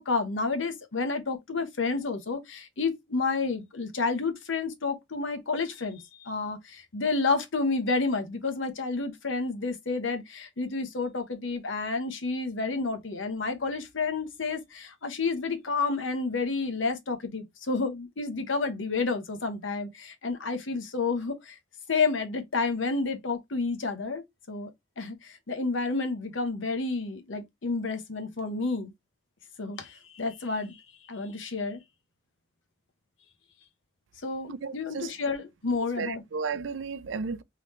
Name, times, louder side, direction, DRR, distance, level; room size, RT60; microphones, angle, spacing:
voice 1, 0.0-21.6 21.9-28.9 29.6-30.8 31.1-31.8 34.2-36.2, left 4 dB, 90° left, 1.0 m, -30 dB
voice 2, 34.5-35.1 36.0-37.4, right 5 dB, 75° right, 0.4 m, -34 dB
3.8 x 3.3 x 3.0 m
head